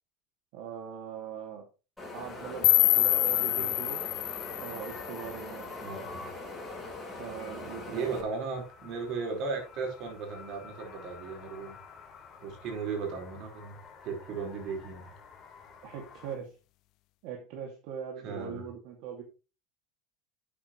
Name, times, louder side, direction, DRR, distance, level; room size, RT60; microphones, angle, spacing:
voice 1, 0.5-1.7 2.1-4.0 4.6-5.7 7.2-8.2 15.8-16.6 17.2-19.2, right 8 dB, 65° right, 1 dB, 2.5 m, -41 dB
Wind, 2.0-8.2, left 2 dB, 5° left, 6.7 m, -42 dB
sound 1, 2.2-16.4, left 5 dB, 25° left, 4.0 m, -50 dB
sound 2, 2.6-5.6, left 18 dB, 50° left, 0.4 m, -26 dB
voice 2, 5.8-6.3 7.9-11.8 12.4-15.1 18.2-18.6, right 4 dB, 50° right, 2 dB, 4.9 m, -36 dB
12.0 x 8.6 x 3.3 m, 0.32 s
cardioid pair, 150°, 0 cm